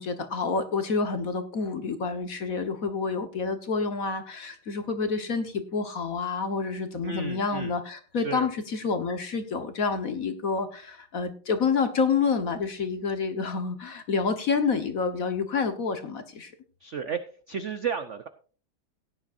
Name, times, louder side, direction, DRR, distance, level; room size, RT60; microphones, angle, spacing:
voice 1, 0.0-16.5, left 5 dB, 45° left, 8 dB, 1.4 m, -28 dB
voice 2, 7.0-7.7 8.2-8.5 16.8-17.2 17.5-18.3, right 7 dB, 60° right, 10 dB, 0.7 m, -32 dB
17.0 x 10.0 x 2.6 m, 0.39 s
omnidirectional pair, 2.3 m